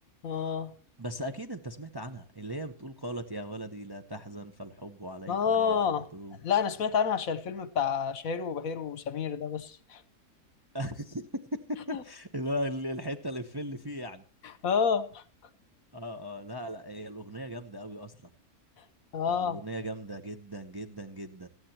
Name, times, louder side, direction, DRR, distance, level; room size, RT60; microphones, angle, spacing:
voice 1, 0.2-0.7 5.3-6.1 6.4-10.0 11.9-12.0 14.6-15.2 19.1-19.6, left 7 dB, 65° left, 1.3 m, -29 dB
voice 2, 1.0-6.4 10.7-11.3 11.5-14.2 15.9-18.3 19.3-21.5, equal, 20° right, 0.7 m, -38 dB
18.0 x 14.5 x 2.9 m
omnidirectional pair, 1.6 m